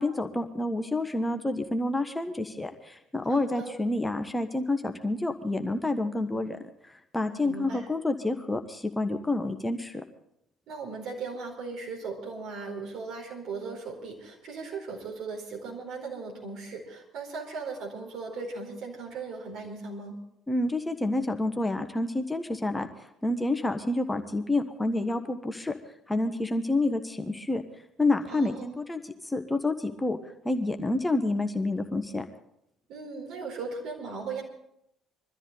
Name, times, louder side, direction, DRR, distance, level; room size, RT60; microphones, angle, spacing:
voice 1, 0.0-6.6 7.1-10.0 20.5-22.9 23.2-25.8 26.1-27.6 28.0-30.2 30.4-32.2, left 2 dB, 15° left, 7 dB, 1.3 m, -28 dB
voice 2, 3.3-3.8 7.4-7.9 10.7-20.1 28.3-28.8 32.9-34.4, right 4 dB, 60° right, 0 dB, 4.5 m, -38 dB
23.0 x 13.5 x 4.1 m, 0.78 s
figure-of-eight pair, 50°, 0 cm